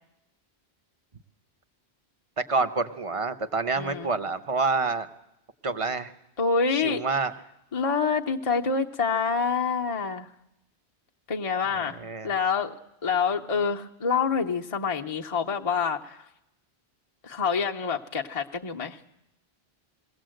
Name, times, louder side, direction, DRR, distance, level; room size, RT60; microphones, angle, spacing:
voice 1, 2.4-5.1 5.6-6.1 6.7-7.3 11.8-12.3, right 4 dB, 30° right, 10 dB, 0.9 m, -27 dB
voice 2, 3.7-4.1 6.4-7.0 7.7-10.3 11.3-12.7 13.0-16.2 17.2-19.0, left 5 dB, 35° left, 1 dB, 0.9 m, -27 dB
21.5 x 17.0 x 7.8 m, 0.85 s
omnidirectional pair, 1.1 m